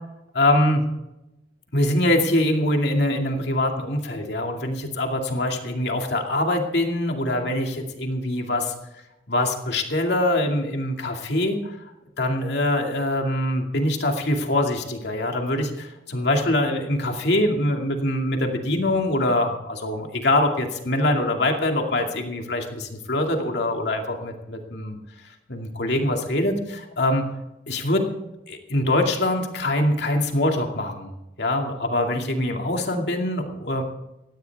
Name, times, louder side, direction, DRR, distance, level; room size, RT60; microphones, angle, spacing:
voice 1, 0.3-0.8 1.7-8.7 9.3-11.8 12.2-25.0 25.5-27.3 27.7-28.0 28.5-31.1 31.4-33.8, left 1 dB, 65° left, 3 dB, 2.4 m, -23 dB
17.0 x 15.5 x 3.6 m, 0.93 s
head